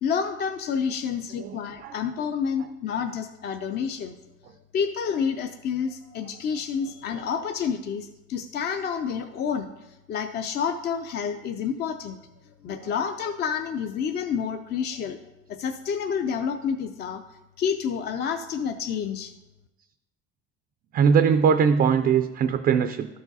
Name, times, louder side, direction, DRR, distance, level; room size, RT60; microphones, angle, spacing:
voice 1, 0.0-4.2 4.7-9.7 10.1-12.2 12.6-15.2 15.5-17.2 17.6-19.3, left 7 dB, 35° left, 6 dB, 0.4 m, -29 dB
voice 2, 1.4-2.0 2.7-2.8 5.1-5.2 6.9-7.2 12.8-12.9 20.9-23.1, right 6 dB, 30° right, 8 dB, 0.4 m, -22 dB
12.5 x 4.8 x 4.0 m, 0.99 s
cardioid pair, 145°, 30 cm